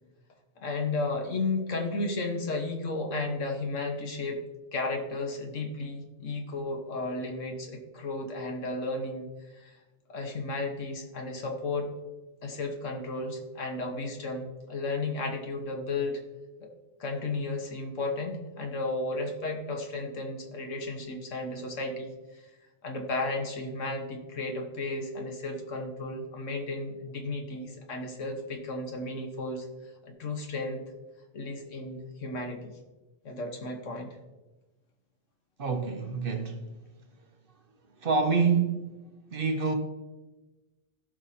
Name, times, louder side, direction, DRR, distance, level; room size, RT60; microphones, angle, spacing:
voice 1, 0.6-4.4 4.7-9.7 10.1-11.9 12.4-16.2 16.6-16.7 17.0-22.4 22.8-29.7 30.0-30.8 31.3-32.7 33.2-34.1, left 2 dB, 80° left, 1.6 m, -33 dB
voice 2, 35.6-36.7 38.0-38.9 39.3-39.7, right 5 dB, 50° right, 0.9 m, -26 dB
16.0 x 5.5 x 2.8 m
omnidirectional pair, 1.3 m